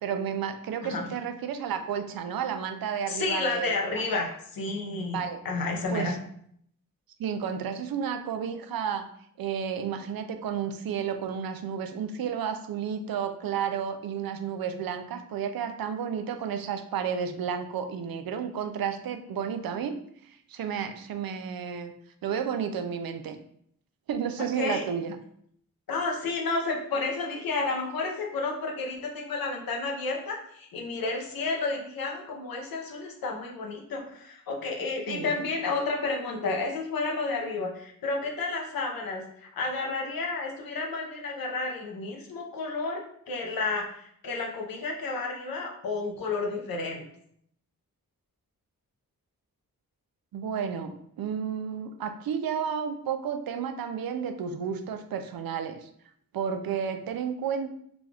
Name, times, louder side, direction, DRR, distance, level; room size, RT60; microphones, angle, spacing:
voice 1, 0.0-4.2 5.1-5.4 5.9-6.2 7.2-9.0 9.4-19.9 20.3-21.9 22.2-23.4 24.1-25.2 35.1-35.5 50.3-55.9 56.3-57.7, right 7 dB, 90° right, 8 dB, 0.5 m, -32 dB
voice 2, 3.1-5.2 5.4-6.2 24.6-24.8 25.9-43.0 43.3-47.0, left 3 dB, 85° left, 0 dB, 0.8 m, -31 dB
4.0 x 2.4 x 3.3 m, 0.68 s
wide cardioid pair, 110°, 34 cm